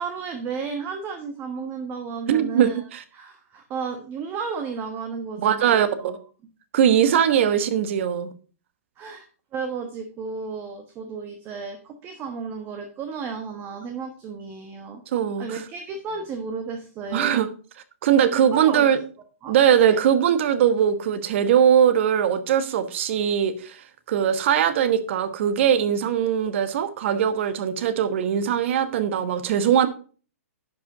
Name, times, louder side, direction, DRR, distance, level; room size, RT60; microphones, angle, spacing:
voice 1, 0.0-2.8 3.1-6.2 7.3-7.7 9.0-9.2 9.5-15.0 15.4-17.4 18.3-19.0 19.4-20.0, right 5 dB, 25° right, 1.2 m, -33 dB
voice 2, 2.3-3.0 5.4-6.2 6.7-8.3 15.1-15.6 17.1-17.5 18.0-19.0 19.5-29.9, right 9 dB, 55° right, 1.1 m, -21 dB
11.0 x 5.3 x 4.8 m
hypercardioid pair, 140°, 8 cm